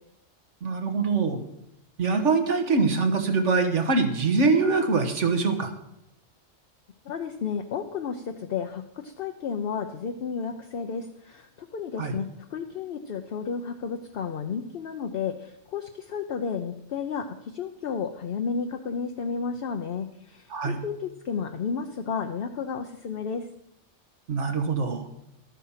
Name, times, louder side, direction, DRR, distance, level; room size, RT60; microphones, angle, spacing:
voice 1, 0.6-1.4 2.0-5.7 12.0-12.1 20.5-20.8 24.3-25.0, right 4 dB, 75° right, 6 dB, 1.7 m, -23 dB
voice 2, 7.1-23.5, left 6 dB, 55° left, 5 dB, 0.8 m, -32 dB
12.5 x 9.3 x 5.7 m, 0.80 s
omnidirectional pair, 1.3 m